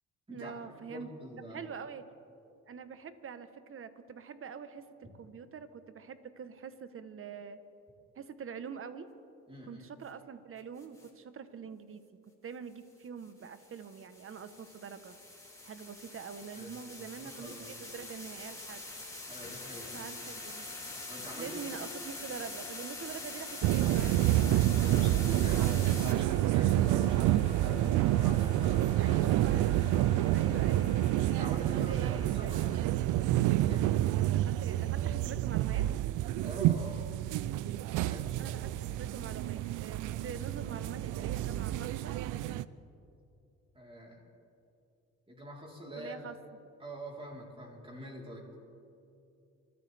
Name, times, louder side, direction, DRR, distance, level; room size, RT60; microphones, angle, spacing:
voice 1, 0.3-1.1 1.5-2.0 2.7-4.8 5.2-7.6 8.1-9.1 9.7-12.1 12.4-15.1 15.6-18.8 19.9-20.7 21.4-25.7 29.0-29.9 30.3-31.1 31.6-32.7 34.3-35.9 38.4-42.1 46.0-46.4, right 6 dB, 45° right, 11 dB, 1.1 m, -45 dB
voice 2, 0.9-1.7 9.5-9.8 16.5-16.9 17.2-17.8 19.3-20.1 21.1-21.8 24.7-27.9 28.1-29.2 31.4-32.8 33.6-33.9 36.4-37.1 38.0-38.3 43.7-44.2 45.3-46.3 46.8-48.4, equal, 20° right, -3 dB, 3.9 m, -45 dB
sound 1, 10.8-11.1 13.2-26.1, left 2 dB, 10° left, 3.2 m, -44 dB
sound 2, 19.4-32.8, left 8 dB, 50° left, 1.7 m, -54 dB
sound 3, 23.6-42.6, right 14 dB, 85° right, 0.5 m, -28 dB
26.5 x 14.0 x 3.4 m, 2.7 s
cardioid pair, 90°, 30 cm